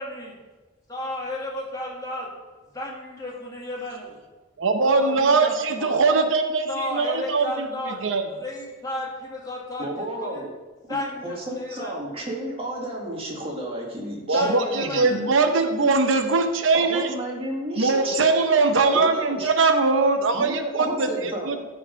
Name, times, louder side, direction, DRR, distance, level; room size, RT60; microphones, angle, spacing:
voice 1, 0.0-0.3 0.9-2.3 2.7-4.2 4.8-6.0 6.7-10.4 10.9-11.9 14.3-15.3, left 1 dB, 20° left, -3 dB, 2.0 m, -33 dB
voice 2, 4.6-7.4 8.0-8.2 14.3-17.1 17.8-21.1 21.5-21.7, right 3 dB, 85° right, 6 dB, 0.8 m, -21 dB
voice 3, 9.8-10.5 10.9-11.0 11.2-15.3 16.7-18.2 18.9-19.5 20.3-21.7, right 1 dB, 30° right, -1 dB, 1.9 m, -32 dB
13.5 x 4.9 x 5.2 m, 1.2 s
head